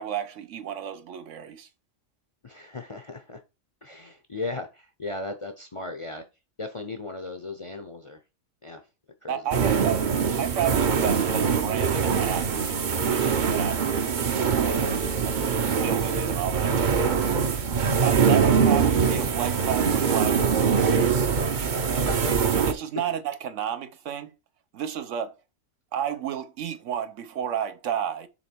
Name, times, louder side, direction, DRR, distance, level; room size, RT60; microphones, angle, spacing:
voice 1, 0.0-1.7 9.3-10.1 10.4-14.8 15.2-15.4 15.8-17.3 18.0-21.3 22.5-24.3 24.7-25.3 25.9-28.3, right 9 dB, 75° right, 1.1 m, -32 dB
voice 2, 2.4-3.4 3.8-6.2 6.6-8.2 8.6-8.8 9.2-9.4 15.5-15.7 18.0-18.2 21.7-22.3 23.0-23.1, left 3 dB, 35° left, 0.5 m, -37 dB
sound 1, 9.5-22.7, right 6 dB, 45° right, 0.8 m, -23 dB
7.0 x 3.0 x 4.4 m
omnidirectional pair, 1.3 m